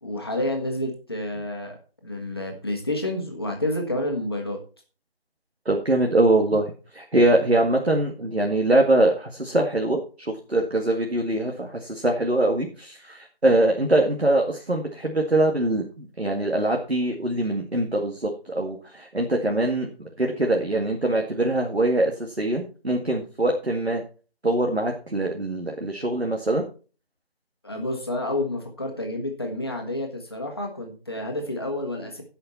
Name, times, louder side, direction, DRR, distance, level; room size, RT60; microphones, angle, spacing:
voice 1, 0.0-1.7 2.0-4.6 27.6-32.2, left 1 dB, 25° left, 1 dB, 1.5 m, -29 dB
voice 2, 5.7-24.0 24.4-26.6, right 1 dB, 85° right, 1 dB, 2.1 m, -23 dB
16.5 x 5.8 x 4.3 m, 0.37 s
figure-of-eight pair, 170°, 31 cm